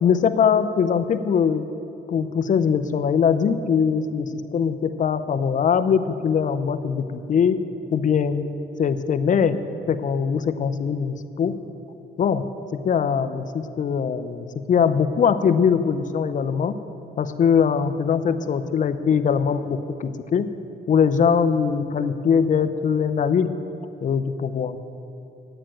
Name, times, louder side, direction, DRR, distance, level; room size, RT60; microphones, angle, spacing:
voice 1, 0.0-1.7 2.1-7.6 7.9-8.5 8.8-9.6 9.9-11.6 12.2-12.4 12.7-16.8 17.2-20.5 20.9-23.5 24.0-24.8, left 7 dB, 40° left, 11 dB, 0.6 m, -21 dB
12.5 x 8.9 x 9.0 m, 2.9 s
cardioid pair, 145°, 19 cm